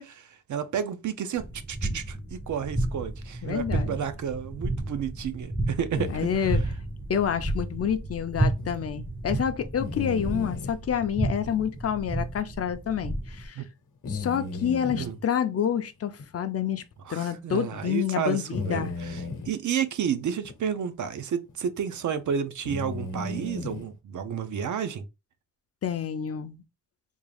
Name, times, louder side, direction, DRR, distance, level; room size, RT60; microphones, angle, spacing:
voice 1, 0.0-6.6 13.6-13.7 14.9-15.2 17.0-25.0, right 8 dB, 65° right, 0.5 m, -31 dB
sound 1, 1.4-13.5, right 2 dB, 5° right, 0.5 m, -32 dB
voice 2, 3.4-4.0 6.1-6.6 7.1-13.6 14.1-16.8 17.1-18.9 25.8-26.6, left 8 dB, 45° left, 0.4 m, -28 dB
sound 2, 5.9-6.7 8.6-8.7 9.8-10.8 11.4-11.5 12.2-12.3 14.0-15.1 16.2-16.3 16.8-16.9 18.5-19.5 20.4-20.6 21.5-21.7 22.6-23.8, left 3 dB, 65° left, 0.8 m, -34 dB
3.5 x 2.3 x 3.3 m
wide cardioid pair, 155°, 33 cm